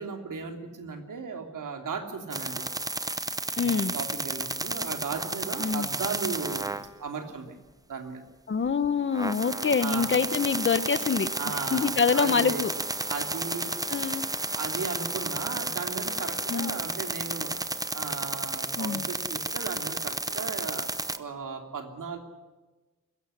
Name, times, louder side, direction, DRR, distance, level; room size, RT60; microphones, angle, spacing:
voice 1, 0.0-2.6 3.6-7.5 7.9-8.2 9.8-10.1 11.4-12.6 13.1-13.7 14.5-22.2, right 5 dB, 80° right, 5 dB, 3.1 m, -36 dB
sound 1, 2.3-6.9 8.8-8.9 9.1-21.2, right 2 dB, 10° right, 0.7 m, -32 dB
voice 2, 3.6-3.9 5.6-5.9 8.5-11.3 11.7-12.7 13.9-14.2 16.5-16.7 18.8-19.0, left 5 dB, 40° left, 14 dB, 0.9 m, -25 dB
22.0 x 16.0 x 9.9 m, 1.2 s
wide cardioid pair, 180°, 31 cm